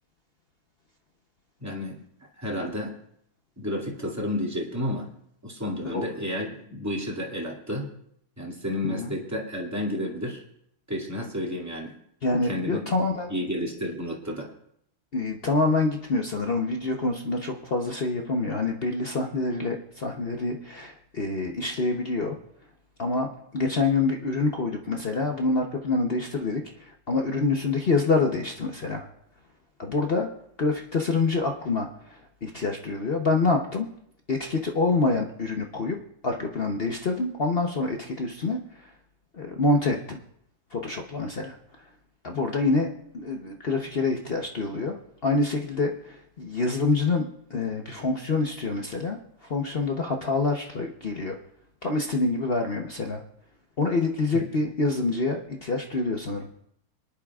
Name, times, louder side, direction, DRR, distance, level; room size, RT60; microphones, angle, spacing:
voice 1, 1.6-2.0 2.4-3.0 3.6-5.1 5.4-7.9 8.4-10.4 10.9-12.0 12.5-12.8 13.3-14.5 54.3-54.4, left 1 dB, 10° right, -3 dB, 2.0 m, -31 dB
voice 2, 12.2-13.3 15.1-22.4 23.0-29.1 29.8-30.3 30.6-33.9 34.3-36.0 36.2-38.9 39.3-40.2 40.7-41.6 42.2-51.4 51.8-53.2 53.8-56.5, left 3 dB, 60° left, 2 dB, 0.6 m, -26 dB
26.0 x 10.5 x 2.4 m, 0.71 s
omnidirectional pair, 2.2 m